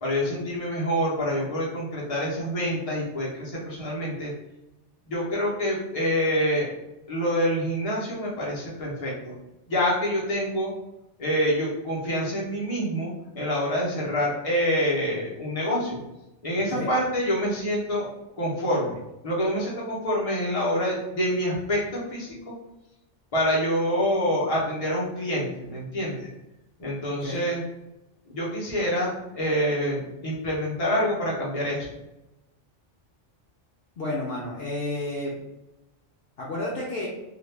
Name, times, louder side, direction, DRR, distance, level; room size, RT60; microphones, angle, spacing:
voice 1, 0.0-4.3 5.0-6.7 7.1-9.3 9.7-10.7 11.2-16.0 16.4-18.1 18.4-19.0 19.2-22.4 23.3-26.3 26.8-27.6 28.3-31.9, equal, 30° left, -5 dB, 0.9 m, -26 dB
voice 2, 34.0-35.3 36.4-37.1, left 2 dB, 60° left, -5 dB, 0.8 m, -31 dB
2.8 x 2.5 x 3.3 m, 0.93 s
omnidirectional pair, 1.2 m